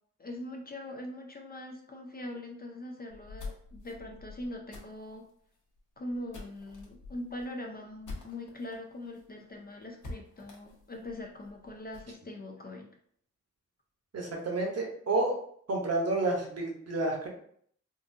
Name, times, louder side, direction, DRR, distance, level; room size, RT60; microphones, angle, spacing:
voice 1, 0.2-5.3 6.0-12.9, left 1 dB, 30° left, 2 dB, 0.4 m, -42 dB
sound 1, 3.1-8.8 9.1-9.2 9.5-9.6 10.0-12.1, left 3 dB, 85° left, 1.0 m, -46 dB
voice 2, 14.1-15.4 15.7-17.3, right 2 dB, 55° right, 0 dB, 0.9 m, -30 dB
3.8 x 2.4 x 2.6 m, 0.63 s
wide cardioid pair, 175°, 30 cm